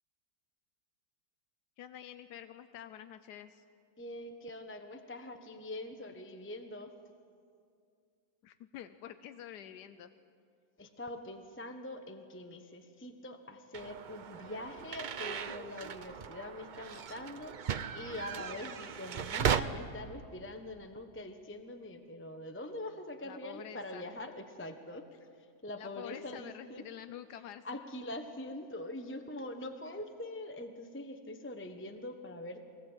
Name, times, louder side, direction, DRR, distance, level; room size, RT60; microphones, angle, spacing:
voice 1, 1.8-3.6 8.4-10.1 23.2-24.1 25.8-27.6, left 10 dB, 90° left, 10 dB, 1.3 m, -48 dB
voice 2, 4.0-6.9 10.8-25.0 25.6-26.8 27.6-32.7, left 1 dB, 10° left, 6 dB, 0.9 m, -44 dB
sound 1, 13.7-19.6, right 8 dB, 85° right, 0.4 m, -37 dB
23.0 x 19.0 x 8.0 m, 2.3 s
omnidirectional pair, 1.7 m